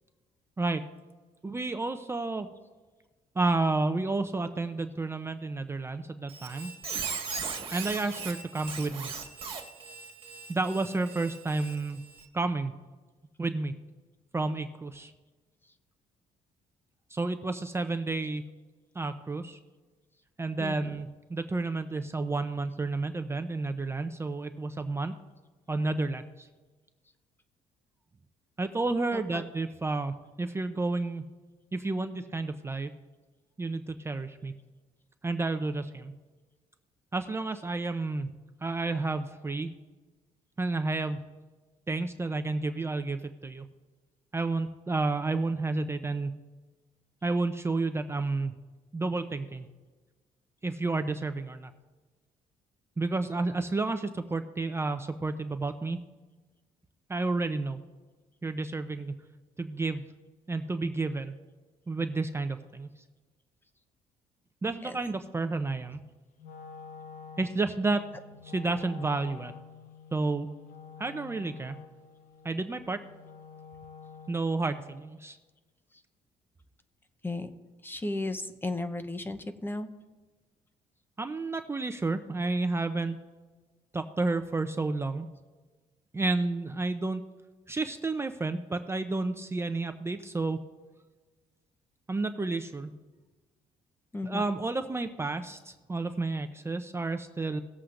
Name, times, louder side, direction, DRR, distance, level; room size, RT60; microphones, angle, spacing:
voice 1, 1.4-2.5 3.4-6.7 7.7-9.1 10.5-12.0 12.3-12.7 13.4-13.7 14.3-15.1 17.1-18.4 18.9-19.6 20.4-25.1 25.7-26.5 28.6-31.2 31.7-32.9 33.6-34.5 35.2-36.1 37.1-38.3 38.6-39.7 40.6-41.2 41.9-43.7 44.3-46.3 47.2-48.5 48.9-49.7 50.6-51.7 53.0-56.0 57.1-57.8 58.4-59.1 59.6-60.0 60.5-61.3 61.9-62.9 64.6-66.0 67.4-68.0 68.5-69.5 70.1-70.5 71.0-71.8 72.4-73.0 74.3-75.4 81.2-83.2 83.9-85.3 86.1-87.2 87.7-90.6 92.1-92.9 94.2-97.6, right 3 dB, 20° right, 8 dB, 0.6 m, -31 dB
Squeak, 6.3-12.3, right 5 dB, 40° right, 1.6 m, -39 dB
voice 2, 20.6-21.0 29.1-29.5 64.8-65.0 75.9-76.0 77.2-77.5 77.8-79.9 94.1-94.4, left 2 dB, 15° left, 10 dB, 0.8 m, -35 dB
Wind instrument woodwind instrument, 66.4-74.6, left 6 dB, 75° left, 1.0 m, -48 dB
18.5 x 7.7 x 2.5 m, 1.3 s
cardioid pair, 95°, 14 cm